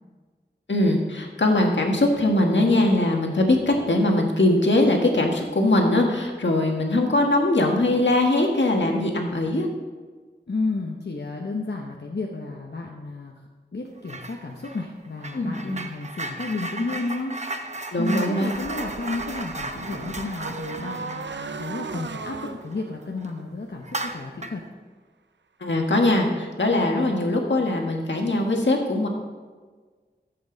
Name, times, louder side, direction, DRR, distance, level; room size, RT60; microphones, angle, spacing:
voice 1, 0.7-9.7 15.3-15.8 17.9-18.5 25.6-29.1, left 1 dB, 90° left, 1 dB, 1.6 m, -21 dB
voice 2, 10.5-13.3 13.7-17.3 17.6-24.6, left 3 dB, 70° left, 0 dB, 1.0 m, -32 dB
sound 1, 14.0-14.4 14.6-22.8 23.2-23.3 23.8-24.7, right 2 dB, 40° right, 0.9 m, -35 dB
sound 2, 18.5-24.1, right 4 dB, 80° right, 0.5 m, -37 dB
14.0 x 7.9 x 4.0 m, 1.4 s
wide cardioid pair, 55°, 18 cm